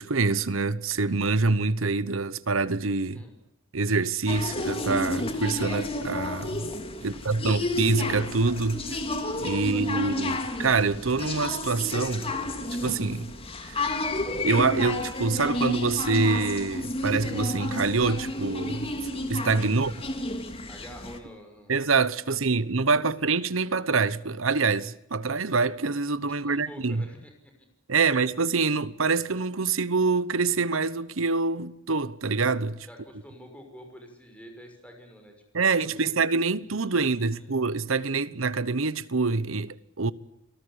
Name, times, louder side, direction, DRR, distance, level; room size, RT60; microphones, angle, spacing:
voice 1, 0.0-3.2 3.7-6.7 7.0-8.8 9.4-12.3 12.8-13.3 13.6-13.9 14.4-19.9 21.7-27.0 27.9-32.9 35.5-40.1, right 4 dB, 90° right, 1.1 m, -26 dB
sound 1, 4.3-21.2, left 1 dB, 30° left, 2.7 m, -31 dB
voice 2, 6.9-7.5 9.5-10.3 19.6-20.3 20.7-21.8 22.3-22.6 22.9-23.3 26.4-27.5 32.9-35.3 35.8-36.1 36.8-37.5, equal, 5° left, 6.1 m, -48 dB
29.0 x 18.5 x 10.0 m
head